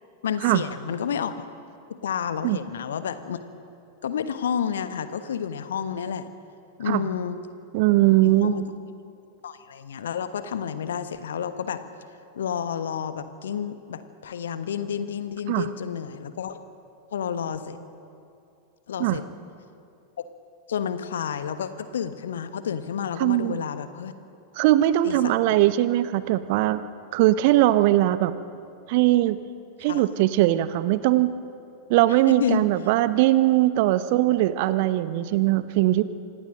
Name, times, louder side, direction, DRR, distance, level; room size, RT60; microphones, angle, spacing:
voice 1, 0.2-1.4 1.9-3.4 4.0-6.3 6.8-7.4 8.2-8.6 9.4-11.8 12.3-16.6 17.1-17.8 18.9-19.2 20.7-24.1 25.0-25.3 29.8-30.0 32.4-32.6, left 8 dB, 65° left, 11 dB, 1.2 m, -30 dB
voice 2, 7.7-8.7 15.5-15.6 19.0-19.2 23.2-23.6 24.6-26.8 27.1-28.3 28.9-29.4 29.8-31.3 31.9-36.0, right 15 dB, 50° right, 14 dB, 0.9 m, -20 dB
26.5 x 18.0 x 6.5 m, 2.6 s
figure-of-eight pair, 90°, 0 cm